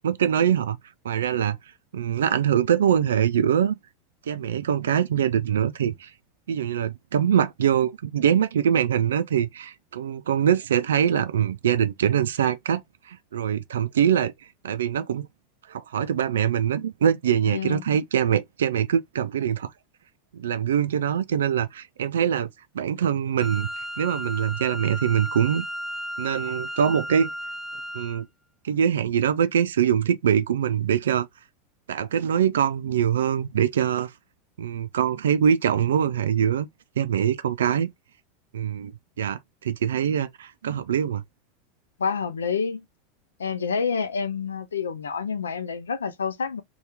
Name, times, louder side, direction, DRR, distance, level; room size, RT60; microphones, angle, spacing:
voice 1, 0.0-0.8 1.0-1.6 1.9-3.8 4.3-6.1 6.5-12.8 13.1-14.3 14.6-15.3 15.7-19.7 20.3-22.5 22.7-23.7 24.0-25.6 26.2-27.3 27.9-28.3 28.6-31.3 31.9-34.1 34.6-36.7 37.0-37.9 38.5-38.9 39.2-41.2, right 9 dB, 75° right, 0.3 m, -23 dB
voice 2, 17.5-17.8 42.0-42.8 43.4-46.6, left 6 dB, 80° left, 0.5 m, -28 dB
Wind instrument woodwind instrument, 23.4-28.2, equal, 10° left, 0.4 m, -34 dB
2.8 x 2.3 x 3.2 m
figure-of-eight pair, 85°, 0 cm